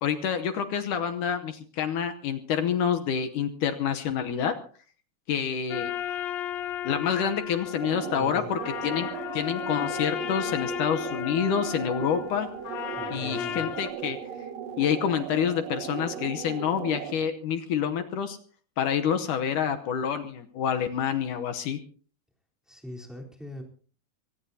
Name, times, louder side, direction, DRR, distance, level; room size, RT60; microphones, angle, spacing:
voice 1, 0.0-4.5 5.3-5.9 6.8-12.5 13.1-14.2 14.8-18.4 18.8-21.8, left 8 dB, 70° left, 7 dB, 2.1 m, -28 dB
sound 1, 5.7-13.9, left 10 dB, 85° left, 1.5 m, -34 dB
sound 2, 7.7-17.3, right 8 dB, 80° right, 1.5 m, -37 dB
voice 2, 8.2-8.5 12.9-13.7 22.7-23.6, equal, ahead, -1 dB, 3.2 m, -41 dB
23.5 x 18.5 x 2.8 m, 0.43 s
omnidirectional pair, 4.5 m